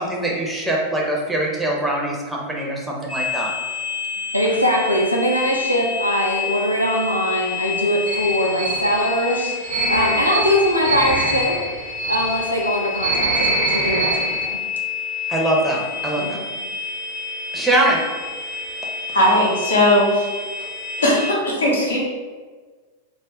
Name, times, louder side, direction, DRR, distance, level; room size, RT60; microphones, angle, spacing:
voice 1, 0.0-3.5 15.3-16.4 17.5-18.0, right 1 dB, 5° right, -3 dB, 0.5 m, -22 dB
sound 1, 3.1-21.3, left 6 dB, 35° left, 0.9 m, -28 dB
voice 2, 4.3-11.6 12.1-14.6 16.2-16.3, equal, 90° left, -2 dB, 0.4 m, -21 dB
sound 2, 8.1-14.5, right 3 dB, 55° right, 0.5 m, -25 dB
voice 3, 19.1-20.3 21.0-22.0, left 1 dB, 75° left, -4 dB, 0.8 m, -18 dB
2.3 x 2.1 x 3.6 m, 1.4 s
figure-of-eight pair, 90°, 0 cm